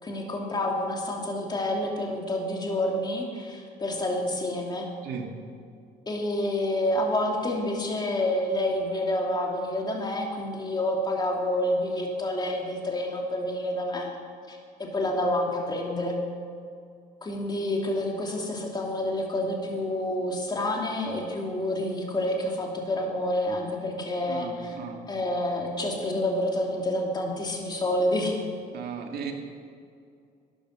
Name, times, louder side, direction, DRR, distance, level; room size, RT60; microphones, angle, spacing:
voice 1, 0.0-4.9 6.1-14.1 14.5-16.2 17.2-24.8 25.1-28.4, left 1 dB, 25° left, 0 dB, 2.7 m, -28 dB
voice 2, 5.0-5.4 24.3-25.1 28.7-29.3, right 6 dB, 65° right, 3 dB, 1.9 m, -36 dB
12.5 x 10.0 x 6.5 m, 2.4 s
cardioid pair, 110°, 17 cm